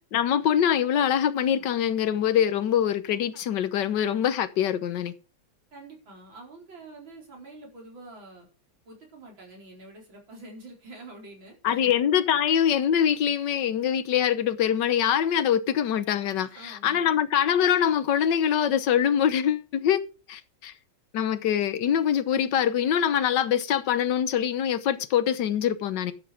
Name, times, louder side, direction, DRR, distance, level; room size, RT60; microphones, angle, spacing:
voice 1, 0.1-5.1 11.6-20.0 20.3-20.7 21.1-26.1, left 9 dB, 70° left, 1.5 m, -24 dB
voice 2, 5.7-8.5 8.8-11.9 16.4-17.1, right 2 dB, 80° right, 5.1 m, -46 dB
12.0 x 7.9 x 5.0 m
omnidirectional pair, 2.1 m